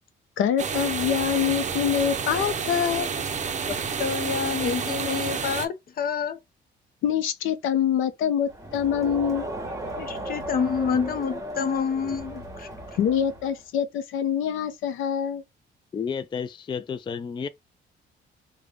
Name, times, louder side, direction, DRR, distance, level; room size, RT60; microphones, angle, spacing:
voice 1, 0.4-3.1 7.0-9.4 13.0-15.4, left 8 dB, 85° left, 0.6 m, -25 dB
sound 1, 0.6-5.7, right 6 dB, 35° right, 0.6 m, -29 dB
voice 2, 3.7-6.4 10.0-12.7, left 6 dB, 50° left, 0.7 m, -28 dB
Crowd, 8.5-13.7, right 1 dB, 15° right, 1.1 m, -36 dB
voice 3, 15.9-17.5, left 6 dB, 25° left, 0.3 m, -31 dB
3.3 x 2.2 x 3.5 m
cardioid pair, 90°, 20 cm